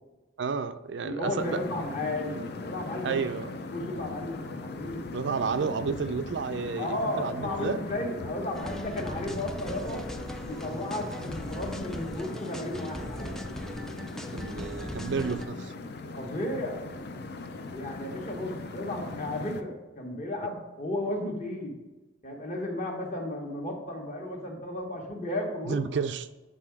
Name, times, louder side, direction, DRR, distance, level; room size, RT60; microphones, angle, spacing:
voice 1, 0.4-1.6 3.0-3.5 5.1-7.8 14.3-15.7 25.7-26.3, right 5 dB, 65° right, 12 dB, 0.4 m, -31 dB
voice 2, 1.0-3.2 3.7-5.0 6.8-10.0 10.5-13.4 16.1-17.0 17.4-21.8 22.2-25.8, left 1 dB, 40° left, 0 dB, 1.4 m, -34 dB
sound 1, 1.4-19.6, left 3 dB, 60° left, 0.6 m, -39 dB
sound 2, 8.5-15.5, equal, 5° left, 0.3 m, -40 dB
7.7 x 3.8 x 4.7 m, 1.1 s
head